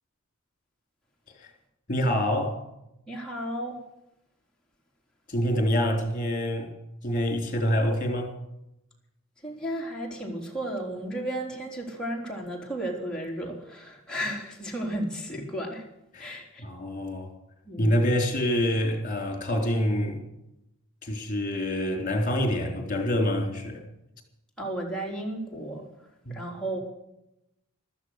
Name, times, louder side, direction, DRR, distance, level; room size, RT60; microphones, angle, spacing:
voice 1, 1.9-2.6 5.3-6.7 7.0-8.3 16.1-17.3 17.8-20.2 21.0-23.8 26.3-26.4, equal, 35° left, 4.0 m, -26 dB
voice 2, 3.1-3.8 9.4-15.9 16.2-16.6 17.6-17.9 24.6-25.9 26.3-26.8, right 1 dB, 5° left, 3.9 m, -33 dB
14.5 x 13.5 x 6.7 m
head